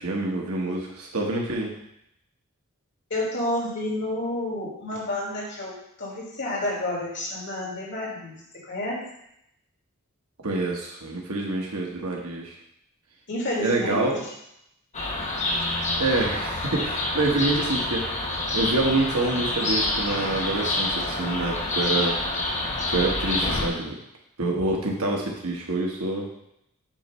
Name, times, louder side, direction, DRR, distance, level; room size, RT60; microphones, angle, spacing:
voice 1, 0.0-1.7 10.4-12.5 13.6-14.2 16.0-18.3 18.5-22.2 22.9-24.0 24.4-26.3, right 2 dB, 90° right, 0 dB, 1.3 m, -26 dB
voice 2, 3.1-9.0 13.3-14.3, left 1 dB, 55° left, -5 dB, 2.9 m, -30 dB
sound 1, 14.9-23.7, left 2 dB, 35° left, 1.2 m, -27 dB
8.7 x 3.1 x 5.5 m, 0.77 s
head